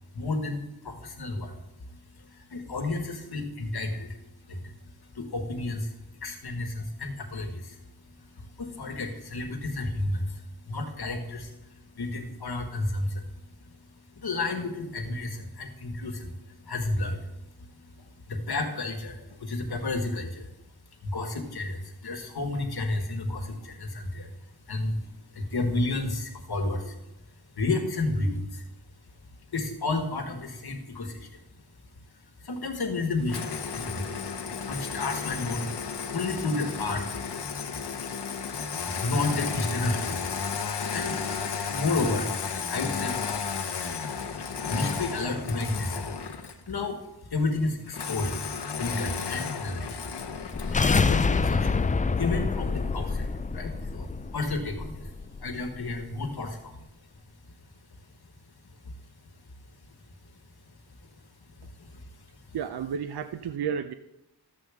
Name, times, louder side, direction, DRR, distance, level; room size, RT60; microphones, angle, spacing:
voice 1, 0.1-1.5 2.5-4.1 4.5-4.6 5.1-5.9 6.2-7.8 8.6-10.4 10.7-11.5 11.9-13.2 14.2-16.3 16.6-17.3 18.3-20.5 21.0-24.3 24.7-25.0 25.3-26.9 27.6-28.6 29.5-31.3 32.4-34.2 34.7-35.7 36.1-37.2 38.8-40.4 40.9-41.2 41.7-42.3 42.7-43.2 44.7-46.1 46.7-47.0 47.3-48.3 48.7-50.0 50.7-55.1 55.4-56.9 61.8-61.9, left 2 dB, 70° left, 4 dB, 1.5 m, -31 dB
Engine starting, 33.3-46.7 47.9-51.1, left 6 dB, 85° left, 1.0 m, -33 dB
sound 1, 50.3-55.4, left 4 dB, 20° left, 0.3 m, -27 dB
voice 2, 62.5-63.9, right 7 dB, 75° right, 10 dB, 0.5 m, -31 dB
13.0 x 7.8 x 3.5 m, 0.94 s
wide cardioid pair, 100°, 39 cm